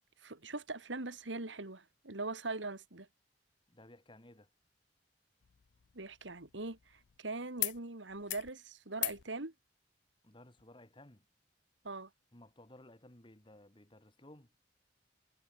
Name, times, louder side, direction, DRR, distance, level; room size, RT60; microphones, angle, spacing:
voice 1, 0.2-3.1 5.9-9.5 11.8-12.1, right 3 dB, 90° right, 2.4 m, -41 dB
voice 2, 3.7-4.5 10.2-11.2 12.3-14.5, left 1 dB, 25° left, 2.6 m, -57 dB
sound 1, 5.4-7.2 7.6-7.8 8.1-8.5 8.9-9.2 10.6-10.7, left 20 dB, 75° left, 0.4 m, -41 dB
head